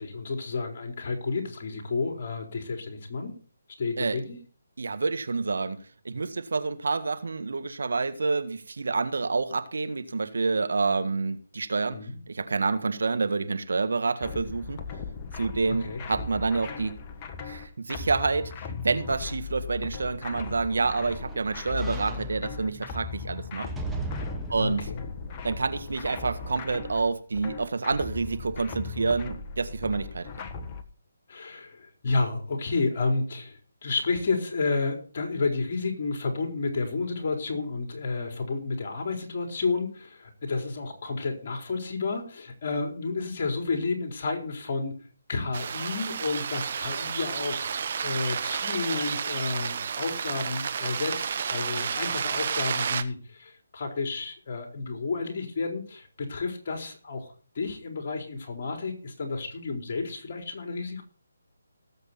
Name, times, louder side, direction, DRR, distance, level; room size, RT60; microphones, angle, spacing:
voice 1, 0.0-3.4 3.8-4.4 11.9-12.2 15.7-16.0 24.6-25.0 31.3-45.0 45.3-47.8 48.0-61.0, left 3 dB, 45° left, 3 dB, 4.3 m, -31 dB
voice 2, 4.8-5.8 6.0-12.0 12.3-14.8 15.3-17.0 17.4-23.7 24.5-24.9 25.4-30.3, right 4 dB, 65° right, 10 dB, 1.6 m, -28 dB
sound 1, 14.2-30.8, left 5 dB, 25° left, 1.4 m, -38 dB
sound 2, 20.4-26.4 26.8-26.9, right 3 dB, 5° right, 1.4 m, -40 dB
sound 3, 45.5-53.0, right 6 dB, 50° right, 1.1 m, -31 dB
18.5 x 8.1 x 4.3 m, 0.41 s
figure-of-eight pair, 150°, 0 cm